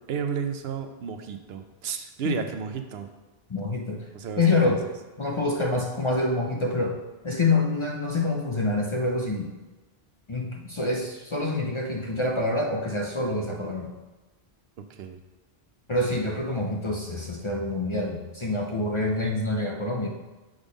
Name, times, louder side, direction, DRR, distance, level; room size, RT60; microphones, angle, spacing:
voice 1, 0.1-3.1 4.1-4.9 14.9-15.2, right 7 dB, 75° right, 7 dB, 0.8 m, -32 dB
voice 2, 3.5-4.1 4.4-4.8 5.2-7.0 7.2-9.5 10.3-13.9 15.9-20.1, left 2 dB, 35° left, 0 dB, 0.5 m, -26 dB
6.4 x 3.6 x 5.1 m, 1.2 s
omnidirectional pair, 1.1 m